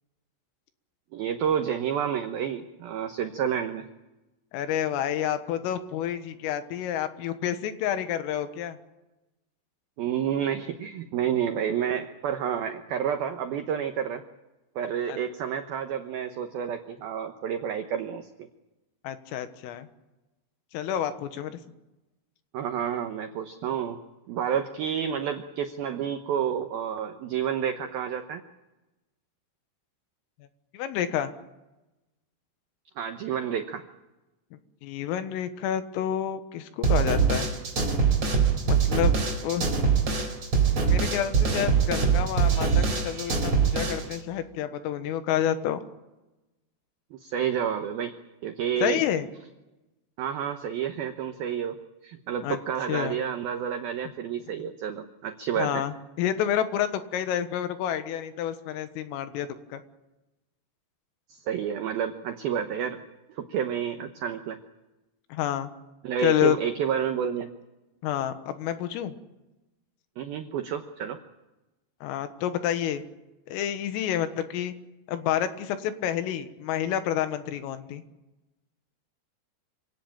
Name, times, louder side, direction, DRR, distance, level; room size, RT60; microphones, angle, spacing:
voice 1, 1.1-3.9 10.0-14.2 14.8-18.3 22.5-24.0 24.3-28.4 33.0-33.8 47.1-48.1 48.4-49.0 50.2-51.8 52.0-55.9 61.3-63.0 63.4-64.6 66.0-67.5 70.2-71.2, right 8 dB, 90° right, 6 dB, 2.1 m, -29 dB
voice 2, 4.5-8.8 15.1-15.2 19.0-19.9 20.7-21.6 30.7-31.3 34.8-37.5 38.7-39.1 39.4-39.7 40.8-45.8 48.8-49.3 52.4-52.6 52.9-53.2 55.6-59.8 65.3-65.7 66.2-66.6 68.0-69.1 72.0-73.0 73.5-74.7 75.1-78.0, left 10 dB, 80° left, 9 dB, 3.9 m, -29 dB
sound 1, 36.8-44.2, right 5 dB, 30° right, 4.8 m, -23 dB
27.0 x 17.5 x 9.0 m, 1.0 s
omnidirectional pair, 6.0 m